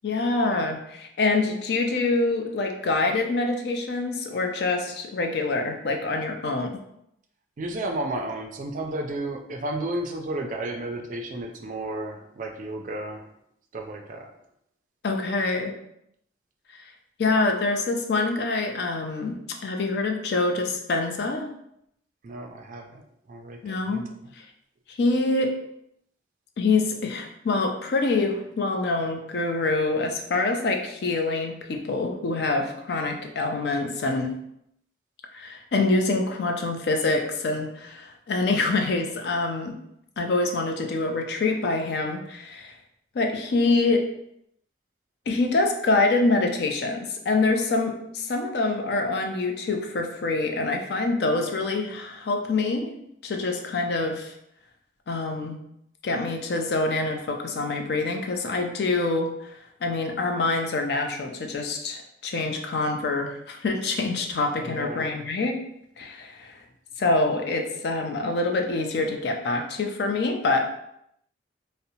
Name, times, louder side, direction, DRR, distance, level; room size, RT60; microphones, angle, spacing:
voice 1, 0.0-6.8 15.0-15.7 16.7-16.9 17.2-21.5 23.6-24.1 24.3-24.5 24.9-25.6 26.6-34.3 35.3-39.8 40.2-42.8 43.1-44.1 45.3-52.9 53.2-54.4 55.1-55.6 56.0-65.6 66.0-66.6 67.0-70.7, left 3 dB, 60° left, 4 dB, 0.4 m, -25 dB
voice 2, 7.6-13.3 13.7-14.3 22.2-23.0 23.3-24.1 64.6-65.1, right 1 dB, 45° right, 3 dB, 0.3 m, -32 dB
2.6 x 2.0 x 2.7 m, 0.76 s
head